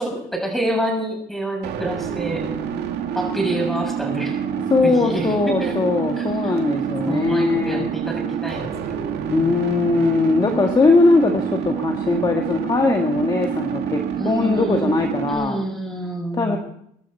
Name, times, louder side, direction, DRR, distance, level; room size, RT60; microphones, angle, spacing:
voice 1, 0.0-2.5 3.1-4.4 4.8-5.8 6.2-6.5 7.0-10.0 14.2-15.0 15.3-16.6, right 1 dB, ahead, 1 dB, 7.1 m, -28 dB
sound 1, 1.6-15.3, right 8 dB, 75° right, 2.3 m, -27 dB
voice 2, 4.7-7.9 9.3-15.6 16.4-16.6, left 3 dB, 25° left, 3 dB, 1.6 m, -20 dB
24.0 x 12.0 x 4.4 m, 0.72 s
cardioid pair, 110°, 17 cm